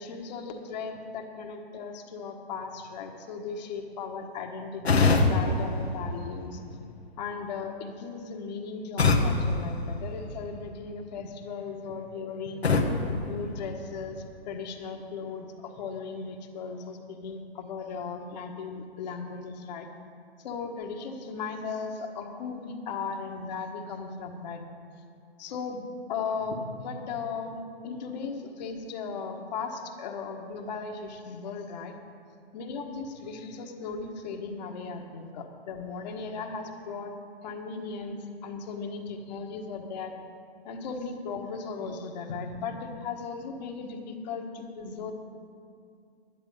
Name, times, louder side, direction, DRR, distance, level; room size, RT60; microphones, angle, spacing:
voice 1, 0.0-6.6 7.2-12.7 13.3-19.9 20.4-24.6 25.4-31.9 32.5-37.1 37.4-40.1 40.6-45.1, left 5 dB, 45° left, 2 dB, 1.5 m, -37 dB
sound 1, 4.8-6.8 9.0-10.7 12.6-14.2, left 3 dB, 90° left, 1.5 m, -26 dB
11.0 x 11.0 x 5.5 m, 2.3 s
hypercardioid pair, 130°, 31 cm